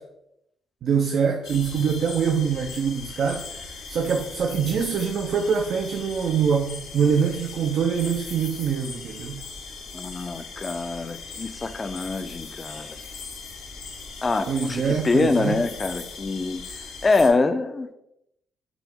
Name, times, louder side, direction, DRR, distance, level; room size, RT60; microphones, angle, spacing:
voice 1, 0.8-9.4 14.5-15.6, right 6 dB, 65° right, 3 dB, 0.4 m, -24 dB
sound 1, 1.4-17.3, left 4 dB, 90° left, 0.8 m, -39 dB
voice 2, 9.9-13.0 14.2-16.6 17.0-17.9, left 3 dB, 30° left, 11 dB, 0.4 m, -25 dB
5.8 x 2.1 x 3.5 m, 0.83 s
cardioid pair, 90°, 0 cm